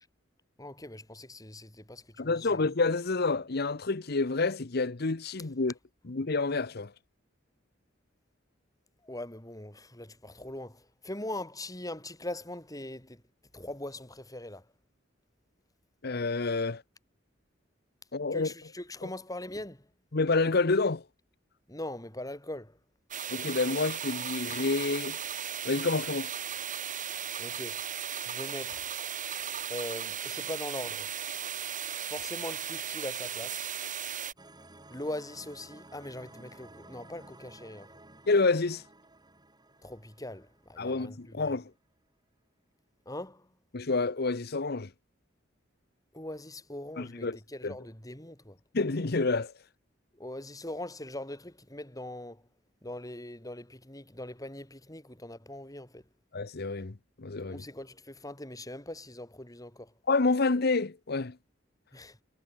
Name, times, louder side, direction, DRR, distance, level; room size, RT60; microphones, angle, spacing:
voice 1, 0.6-2.6 9.0-13.2 13.5-14.6 18.3-19.8 21.7-22.8 27.4-27.8 28.3-28.8 29.7-31.1 32.1-33.7 34.9-37.9 39.8-41.6 43.1-43.5 46.1-48.6 50.2-52.4 52.8-56.0 57.5-59.9 61.9-62.2, left 1 dB, 20° left, 7.5 m, -41 dB
voice 2, 2.2-5.7 6.0-6.9 16.0-16.8 18.1-18.5 19.0-19.1 20.1-21.0 23.3-25.2 25.6-26.3 38.3-38.8 40.8-41.7 43.7-44.9 47.0-47.4 47.6-47.7 48.7-49.5 56.3-57.6 60.1-61.4, left 3 dB, 55° left, 0.9 m, -28 dB
sound 1, 23.1-34.3, right 9 dB, 45° right, 5.4 m, -36 dB
sound 2, 34.4-41.4, right 2 dB, 20° right, 7.4 m, -54 dB
head